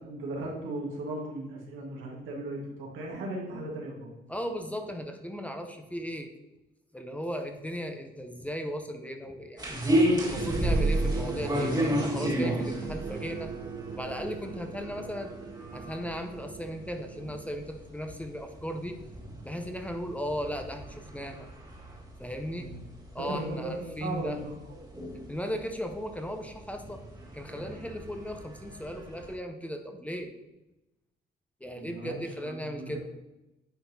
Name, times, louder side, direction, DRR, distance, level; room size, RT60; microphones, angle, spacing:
voice 1, 0.0-4.1 22.6-22.8 23.2-24.9 31.7-33.0, right 2 dB, 85° right, -1 dB, 1.6 m, -37 dB
voice 2, 4.3-6.3 6.9-9.8 10.2-13.5 13.9-15.3 15.7-19.0 19.4-21.5 22.2-22.7 23.1-24.4 25.3-27.0 27.3-30.3 31.6-33.0, equal, 5° left, 5 dB, 0.7 m, -36 dB
sound 1, 9.6-29.3, equal, 20° right, 1.7 m, -33 dB
sound 2, 10.4-17.5, right 6 dB, 50° right, 0.6 m, -39 dB
9.6 x 4.1 x 2.8 m, 0.96 s
cardioid pair, 90°, 20 cm